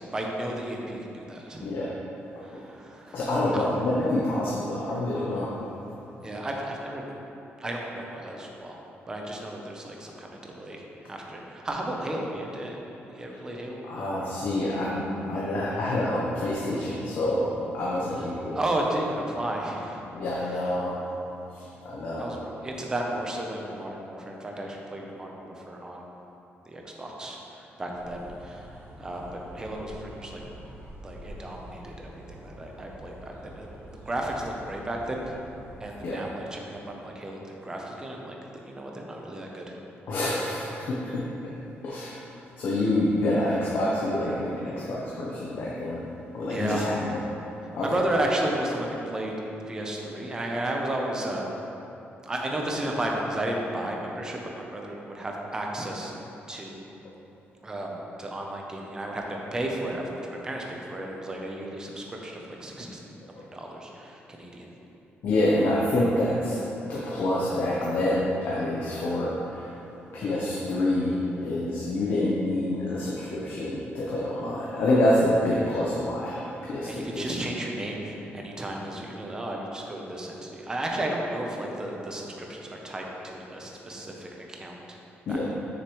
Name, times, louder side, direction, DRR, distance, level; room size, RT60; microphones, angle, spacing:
voice 1, 0.0-1.7 2.4-3.2 3.5-3.6 6.2-7.0 7.6-8.8 9.1-10.8 11.1-12.8 13.1-14.0 18.5-20.0 22.2-26.0 26.7-28.7 29.0-30.4 31.0-35.4 35.8-38.4 38.6-39.8 46.5-46.9 47.8-49.4 49.7-51.5 52.2-56.1 56.5-56.8 57.6-63.0 63.5-64.7 76.9-84.8 85.3-85.4, right 1 dB, 15° right, 0 dB, 0.7 m, -33 dB
voice 2, 3.1-5.7 13.8-18.6 20.1-21.0 21.5-22.4 36.0-36.2 40.1-41.2 41.8-42.2 42.6-46.0 46.3-47.2 47.7-48.1 65.2-66.6 66.9-69.7 70.1-77.4 85.3-85.5, left 1 dB, 55° left, -5 dB, 0.8 m, -27 dB
sound 1, 27.9-36.0, right 1 dB, 75° right, 1.4 m, -46 dB
6.6 x 6.4 x 3.1 m, 3.0 s
cardioid pair, 175°, 4 cm